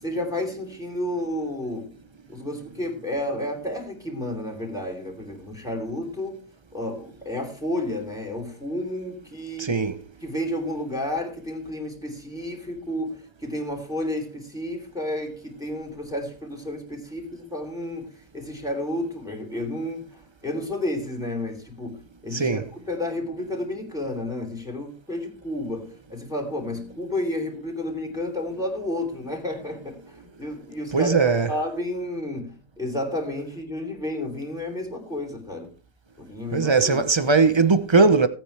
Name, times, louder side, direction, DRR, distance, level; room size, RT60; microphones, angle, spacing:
voice 1, 0.0-1.9 2.3-6.4 6.7-9.7 10.2-22.6 22.9-31.1 31.5-35.7 36.2-37.0, left 1 dB, ahead, 3.3 m, -31 dB
voice 2, 9.6-10.0 22.3-22.6 30.9-31.5 36.5-38.3, right 4 dB, 30° right, 0.5 m, -19 dB
17.0 x 9.2 x 3.4 m
omnidirectional pair, 1.7 m